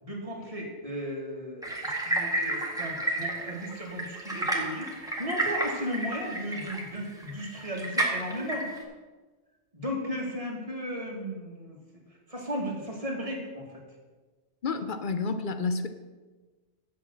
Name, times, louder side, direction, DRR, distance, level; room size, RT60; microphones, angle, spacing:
voice 1, 0.0-8.7 9.7-11.8 12.1-13.8, equal, 30° right, -2 dB, 2.1 m, -35 dB
sound 1, 1.6-8.8, right 1 dB, 5° right, 1.7 m, -31 dB
voice 2, 14.6-15.9, left 4 dB, 55° left, 9 dB, 0.8 m, -30 dB
7.8 x 7.2 x 7.3 m, 1.3 s
omnidirectional pair, 1.1 m